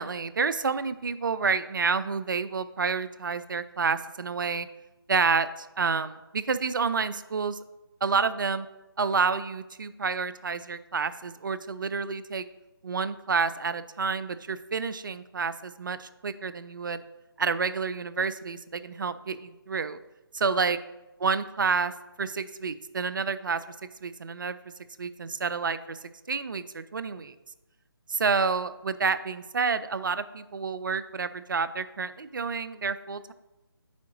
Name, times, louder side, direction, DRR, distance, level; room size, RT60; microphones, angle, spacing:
voice 1, 0.0-4.7 5.1-7.6 8.0-8.7 9.0-12.4 12.8-17.0 17.4-20.0 20.3-20.8 21.2-21.9 22.2-23.6 24.0-24.6 25.0-26.0 26.3-27.3 28.1-33.3, right 5 dB, 55° right, 14 dB, 0.4 m, -29 dB
8.3 x 4.6 x 2.9 m, 0.99 s
figure-of-eight pair, 150°, 13 cm